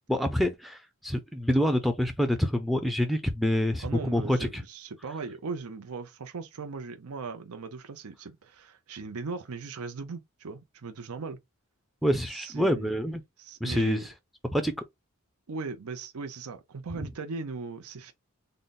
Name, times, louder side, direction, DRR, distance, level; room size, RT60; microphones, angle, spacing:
voice 1, 0.1-4.6 12.0-13.2 13.6-14.1 14.5-14.7, equal, ahead, 0.4 m, -26 dB
voice 2, 3.8-11.4 12.3-12.9 13.4-14.1 15.5-18.1, right 4 dB, 80° right, 0.6 m, -38 dB
3.8 x 2.1 x 3.9 m
head